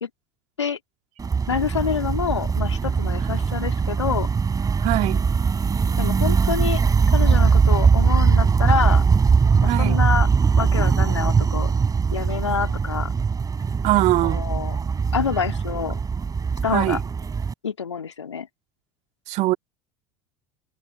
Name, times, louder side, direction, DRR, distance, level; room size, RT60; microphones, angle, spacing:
sound 1, 1.2-17.5, right 5 dB, 25° right, 6.5 m, -21 dB
voice 1, 1.5-4.3 6.0-6.8 7.1-9.0 9.6-10.3 10.6-11.7 12.1-13.1 14.2-14.8 15.1-16.0 16.6-17.0 17.6-18.5, left 6 dB, 85° left, 2.3 m, -27 dB
voice 2, 4.8-5.3 9.7-10.0 13.8-14.4 16.7-17.0 19.3-19.6, right 18 dB, 50° right, 2.4 m, -22 dB
figure-of-eight pair, 70°, 14 cm